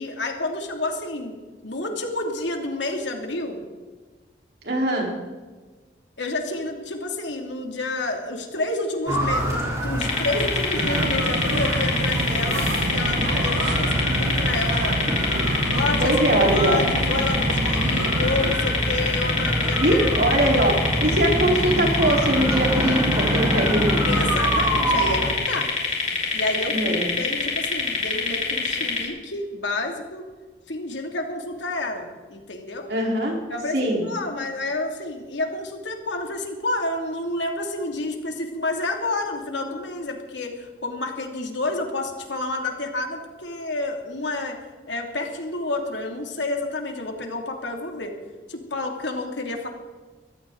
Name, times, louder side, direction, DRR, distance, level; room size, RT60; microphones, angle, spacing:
voice 1, 0.0-1.3 1.6-3.6 6.2-15.0 15.7-20.1 24.1-25.7 26.3-30.2 30.7-32.9 33.5-44.6 44.9-48.2 48.5-49.7, left 2 dB, 90° left, 3 dB, 2.7 m, -29 dB
voice 2, 4.6-5.1 16.0-16.8 19.8-24.0 26.7-27.1 32.9-33.4 33.7-34.0, right 1 dB, 65° right, -1 dB, 4.3 m, -21 dB
sound 1, 9.1-25.3, right 1 dB, 15° right, 4.5 m, -26 dB
sound 2, 10.0-29.1, left 4 dB, 40° left, 3.7 m, -26 dB
sound 3, 10.8-18.6, right 2 dB, 80° right, 1.1 m, -28 dB
23.5 x 15.0 x 4.0 m, 1.3 s
head